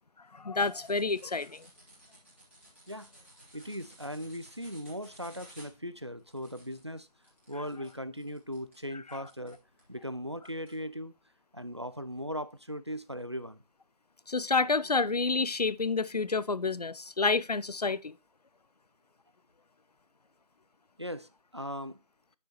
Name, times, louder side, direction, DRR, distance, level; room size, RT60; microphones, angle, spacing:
voice 1, 0.3-1.7 14.3-18.1, left 4 dB, 70° left, 0.5 m, -29 dB
sound 1, 0.6-9.9 10.4-10.8, right 1 dB, 20° right, 1.9 m, -56 dB
voice 2, 3.5-7.1 7.5-9.6 9.9-11.1 11.5-13.6 21.0-22.0, equal, 40° right, 0.4 m, -38 dB
9.5 x 6.4 x 3.0 m
figure-of-eight pair, 180°, 21 cm